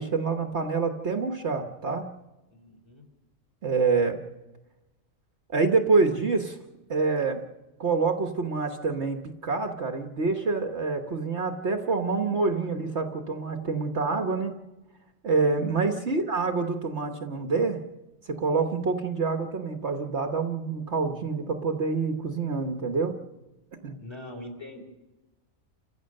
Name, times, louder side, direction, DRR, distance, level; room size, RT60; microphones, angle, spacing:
voice 1, 0.0-2.1 3.6-4.2 5.5-6.6 6.9-7.4 7.8-14.5 15.2-17.8 18.3-23.1 23.8-24.0, right 4 dB, 55° right, 5 dB, 1.5 m, -26 dB
voice 2, 2.5-3.1 16.1-16.2 24.0-24.8, left 1 dB, 20° left, 3 dB, 4.7 m, -42 dB
29.5 x 15.5 x 6.5 m, 1.1 s
omnidirectional pair, 1.4 m